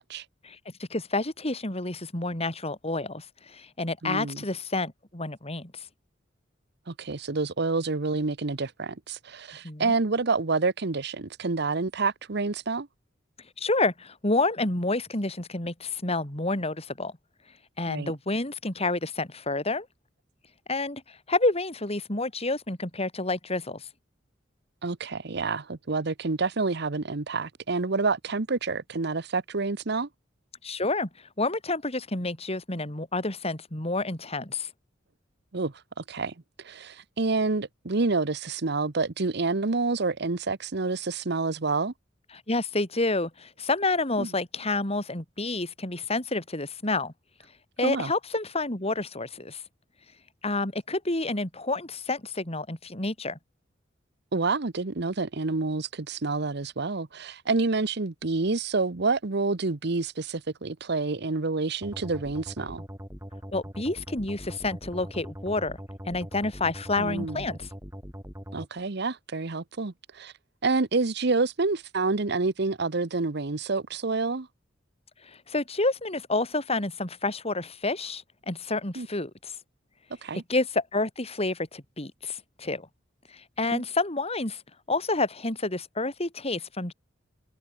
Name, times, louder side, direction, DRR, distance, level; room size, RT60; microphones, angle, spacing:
voice 1, 0.4-5.8 9.6-9.9 13.6-17.1 17.8-19.9 20.7-23.9 30.6-31.1 31.4-34.7 42.5-47.1 47.8-49.6 50.4-53.4 63.5-65.8 66.1-67.7 75.3-79.5 80.5-82.9 83.3-84.6 84.9-86.9, left 2 dB, 35° left, 4.2 m, -29 dB
voice 2, 4.0-4.4 6.9-12.9 17.9-18.1 24.8-30.1 35.5-36.3 36.6-41.9 44.2-44.3 47.8-48.1 54.3-62.8 67.0-67.4 68.5-70.3 70.6-74.5 78.9-79.1 80.2-80.4 83.7-83.8, right 3 dB, 60° right, 1.0 m, -28 dB
sound 1, 61.8-68.7, equal, 15° right, 6.4 m, -41 dB
head